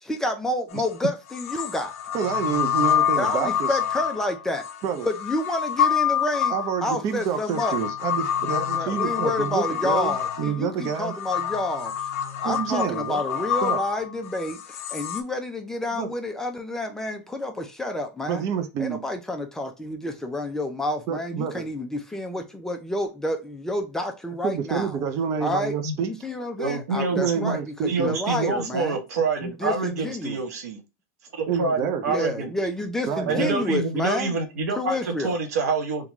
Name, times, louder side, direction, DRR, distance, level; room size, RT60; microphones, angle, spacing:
voice 1, 0.0-1.9 3.2-4.7 5.0-6.5 6.8-7.8 8.7-11.9 12.4-18.4 18.8-25.0 25.4-25.7 26.0-29.0 29.4-30.4 32.1-34.4 34.8-35.4, left 1 dB, 5° left, 0.5 m, -29 dB
sound 1, 0.7-0.8 1.3-15.2, left 9 dB, 60° left, 0.5 m, -27 dB
voice 2, 2.1-3.8 4.8-5.1 6.5-11.1 12.4-13.2 13.6-13.8 16.0-16.1 18.3-19.0 21.1-21.6 24.4-26.1 27.2-28.1 31.5-32.1 33.1-33.5, right 7 dB, 35° right, 0.6 m, -28 dB
voice 3, 26.6-27.6 27.9-30.8 31.3-32.5 33.3-36.1, right 4 dB, 80° right, 1.1 m, -27 dB
3.6 x 2.3 x 3.0 m
supercardioid pair, 140°, 9 cm